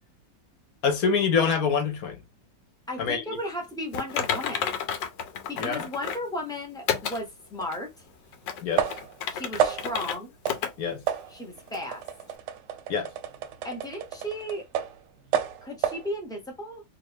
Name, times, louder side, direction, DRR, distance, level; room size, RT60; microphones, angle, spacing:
voice 1, 0.8-2.2 3.0-3.2 5.5-5.8 8.6-8.8 10.8-11.0 12.9-13.1, left 6 dB, 60° left, 1.2 m, -25 dB
voice 2, 2.9-4.6 5.5-7.9 9.3-10.3 11.3-12.0 13.6-14.7 15.6-16.8, left 1 dB, 5° left, 0.3 m, -35 dB
Typing, 3.9-6.3 6.9-7.2 7.7-7.8 8.3-10.2 10.5-10.7 11.1-11.2 11.7-11.8, left 7 dB, 80° left, 1.3 m, -31 dB
sound 1, 7.6-7.7 8.8-9.2 9.6-10.0 10.5-10.7 11.1-15.0 15.3-16.1, right 9 dB, 75° right, 1.1 m, -30 dB
2.9 x 2.7 x 3.2 m
omnidirectional pair, 2.0 m